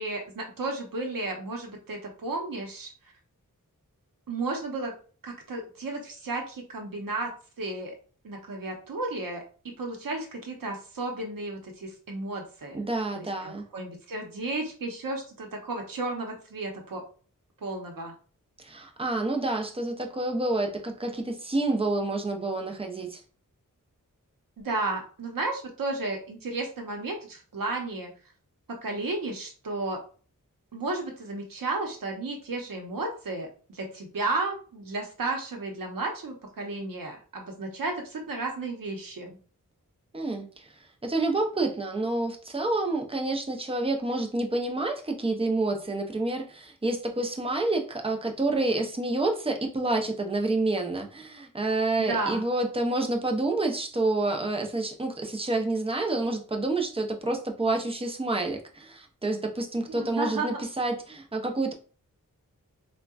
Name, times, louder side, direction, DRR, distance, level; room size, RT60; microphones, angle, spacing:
voice 1, 0.0-2.9 4.3-4.9 5.2-7.3 7.6-8.0 8.2-9.4 9.8-12.8 13.1-17.0 17.6-18.1 24.6-28.1 28.7-30.0 30.7-39.4 52.0-52.4 59.9-60.6, right 2 dB, 80° right, 2 dB, 0.8 m, -33 dB
voice 2, 12.7-13.7 18.6-23.2 40.1-40.7 41.0-61.7, right 2 dB, 15° right, 3 dB, 0.6 m, -28 dB
3.6 x 2.3 x 2.3 m, 0.39 s
wide cardioid pair, 65°, 33 cm